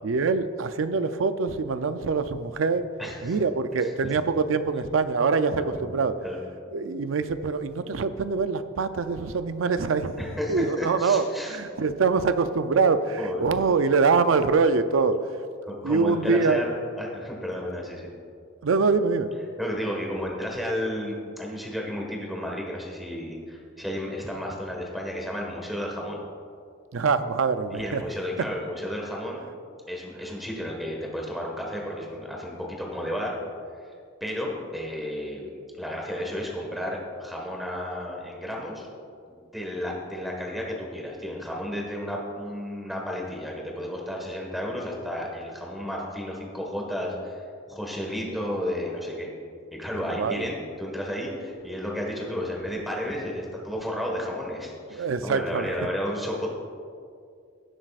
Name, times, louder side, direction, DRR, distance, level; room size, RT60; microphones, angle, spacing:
voice 1, 0.0-2.9 3.2-6.2 6.7-10.2 10.5-15.2 15.8-16.6 18.6-19.3 26.9-28.0 28.4-28.5 50.2-50.5 54.9-55.7, right 4 dB, 90° right, 11 dB, 0.5 m, -24 dB
voice 2, 3.0-3.4 3.8-3.9 5.5-5.8 6.2-6.4 10.2-11.6 13.2-13.4 15.6-18.1 19.6-26.2 27.7-29.4 29.9-33.3 34.2-35.5 35.8-38.9 39.3-47.4 47.7-49.3 49.7-56.5, equal, ahead, -1 dB, 1.5 m, -32 dB
16.5 x 7.5 x 2.4 m, 2.3 s
head